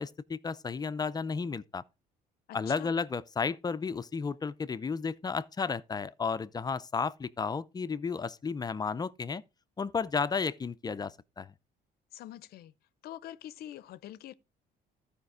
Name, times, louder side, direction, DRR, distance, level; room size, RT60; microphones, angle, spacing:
voice 1, 0.0-1.8 2.5-9.4 9.8-11.5, left 5 dB, 25° left, 0.5 m, -33 dB
voice 2, 2.5-2.9 12.1-12.7 13.0-14.3, left 12 dB, 65° left, 0.6 m, -45 dB
13.0 x 5.1 x 4.8 m
cardioid pair, 110°, 17 cm